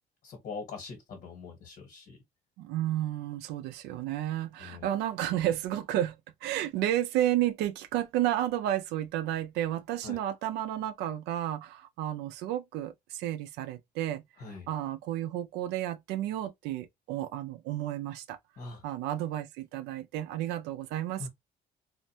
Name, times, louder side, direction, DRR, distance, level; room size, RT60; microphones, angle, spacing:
voice 1, 0.2-2.2 4.6-4.9 10.0-10.2 14.4-14.7 18.6-18.8 21.2-21.3, left 4 dB, 70° left, 1.3 m, -42 dB
voice 2, 2.6-14.2 14.7-18.4 18.8-21.3, right 12 dB, 90° right, 0.4 m, -32 dB
2.5 x 2.1 x 2.6 m
cardioid pair, 110°, 17 cm